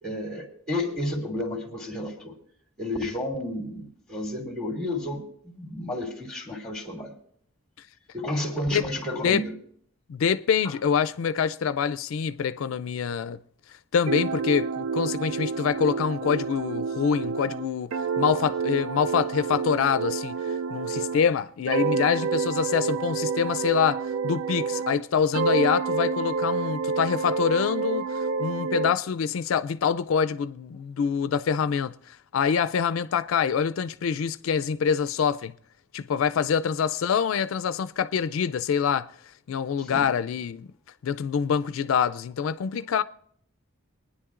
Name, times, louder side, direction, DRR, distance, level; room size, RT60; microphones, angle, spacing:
voice 1, 0.0-2.3 2.8-7.1 8.1-9.5 10.6-10.7 39.8-40.1, left 1 dB, 5° left, 2.5 m, -31 dB
voice 2, 10.1-13.4 13.9-20.4 20.7-35.5 35.9-39.1 39.5-40.7 41.0-43.0, left 7 dB, 80° left, 0.4 m, -25 dB
sound 1, 14.1-21.3 21.7-25.0 25.3-29.0, right 5 dB, 90° right, 0.4 m, -29 dB
25.0 x 9.9 x 2.4 m
head